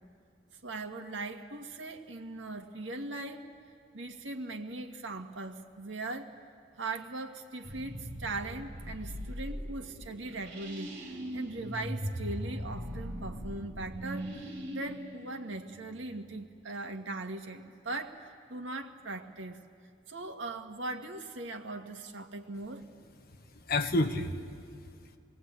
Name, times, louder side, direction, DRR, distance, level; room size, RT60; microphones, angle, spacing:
voice 1, 0.6-3.5 3.9-6.3 6.8-19.6 20.1-22.8, right 2 dB, 75° right, 4 dB, 1.8 m, -40 dB
sound 1, 7.6-16.3, equal, 60° right, 3.7 m, -40 dB
voice 2, 23.2-25.2, left 2 dB, 50° left, 5 dB, 1.5 m, -32 dB
29.0 x 20.5 x 8.8 m, 2.3 s
head